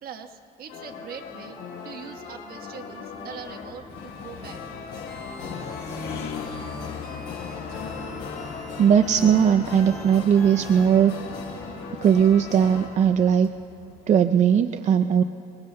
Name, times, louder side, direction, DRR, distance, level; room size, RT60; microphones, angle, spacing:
voice 1, 0.0-1.6 1.8-4.7, right 8 dB, 65° right, 6 dB, 1.2 m, -42 dB
sound 1, 0.7-12.9, left 5 dB, 90° left, 4.0 m, -38 dB
sound 2, 2.8-14.4, left 6 dB, 70° left, 1.6 m, -41 dB
sound 3, 5.1-10.9, right 1 dB, ahead, 3.6 m, -44 dB
voice 2, 8.8-11.1 12.0-13.5 14.1-15.2, right 8 dB, 45° right, 8 dB, 0.5 m, -19 dB
28.5 x 21.0 x 2.2 m, 2.8 s
cardioid pair, 110°, 17 cm